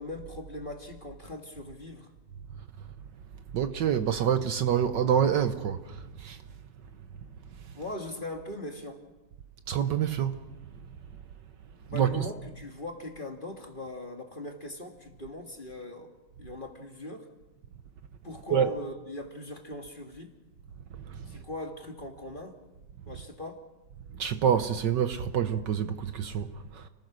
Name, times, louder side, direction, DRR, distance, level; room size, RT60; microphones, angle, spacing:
voice 1, 0.0-2.1 7.7-9.0 11.9-16.1 16.4-17.3 18.2-20.3 21.3-22.6 23.1-23.6, left 1 dB, 25° left, 1.9 m, -40 dB
voice 2, 3.5-6.4 9.7-10.4 11.9-12.3 18.5-18.7 21.1-21.3 24.2-26.9, right 8 dB, 65° right, 1.4 m, -27 dB
29.5 x 20.0 x 6.1 m
omnidirectional pair, 2.2 m